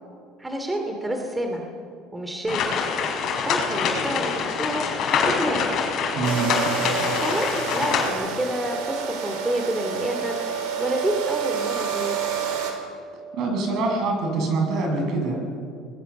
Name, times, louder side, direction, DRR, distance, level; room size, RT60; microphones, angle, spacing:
voice 1, 0.4-1.7 2.1-2.7 3.4-4.9 5.3-5.7 7.2-10.4 10.8-12.2, right 1 dB, 10° right, 3 dB, 2.6 m, -28 dB
sound 1, 2.5-8.1, left 6 dB, 50° left, 5.6 m, -25 dB
voice 2, 6.1-6.6 13.3-15.4, right 3 dB, 55° right, 2 dB, 6.9 m, -24 dB
sound 2, 6.2-12.7, right 7 dB, 90° right, 4.6 m, -29 dB
29.5 x 21.0 x 7.2 m, 2.4 s
cardioid pair, 130°, 0 cm